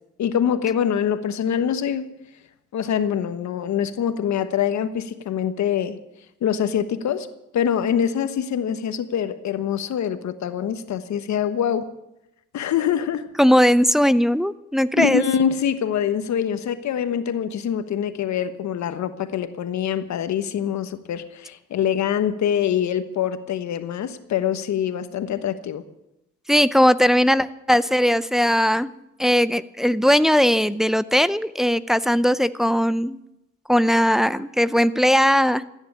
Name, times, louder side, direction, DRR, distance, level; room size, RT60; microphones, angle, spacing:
voice 1, 0.2-2.1 2.7-6.0 6.4-7.3 7.5-11.9 12.5-13.3 15.0-25.8, left 9 dB, 65° left, 11 dB, 1.3 m, -24 dB
voice 2, 13.4-15.2 26.5-28.9 29.2-33.2 33.7-35.6, equal, ahead, 14 dB, 0.6 m, -19 dB
15.0 x 9.8 x 8.7 m, 0.87 s
cardioid pair, 90°, 30 cm